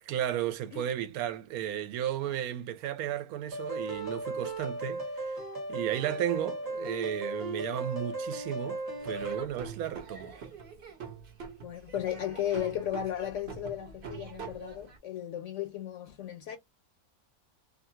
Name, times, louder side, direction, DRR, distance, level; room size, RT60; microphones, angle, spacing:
voice 1, 0.0-5.4 5.7-10.4, right 11 dB, 85° right, 1.0 m, -34 dB
sound 1, 3.5-9.4, right 2 dB, 15° right, 0.9 m, -36 dB
Laughter / Drum, 9.0-15.0, right 6 dB, 50° right, 0.8 m, -45 dB
voice 2, 11.6-16.6, left 11 dB, 70° left, 0.8 m, -35 dB
2.7 x 2.5 x 2.7 m
omnidirectional pair, 1.5 m